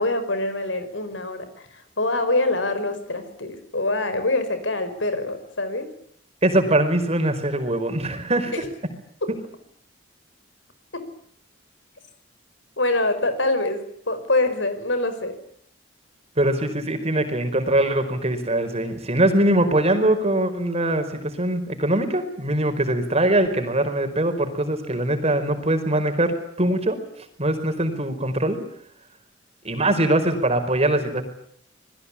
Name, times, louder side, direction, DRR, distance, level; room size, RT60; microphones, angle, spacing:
voice 1, 0.0-5.9 12.8-15.4, left 2 dB, 75° left, 10 dB, 5.5 m, -25 dB
voice 2, 6.4-8.5 16.4-27.0 27.4-28.6 29.6-31.2, right 1 dB, 35° right, 7 dB, 4.9 m, -22 dB
28.0 x 21.5 x 8.6 m, 0.66 s
head